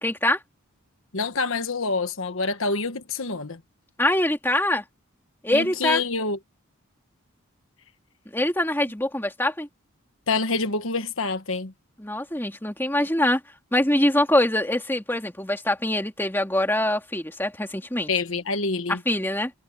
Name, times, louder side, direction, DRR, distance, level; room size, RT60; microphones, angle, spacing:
voice 1, 0.0-0.4 4.0-4.8 5.4-6.0 8.3-9.7 12.0-13.4 13.7-18.1 19.1-19.5, left 1 dB, 10° left, 2.6 m, -24 dB
voice 2, 1.1-3.6 5.5-6.4 10.3-11.7 18.1-19.0, left 4 dB, 70° left, 1.5 m, -26 dB
head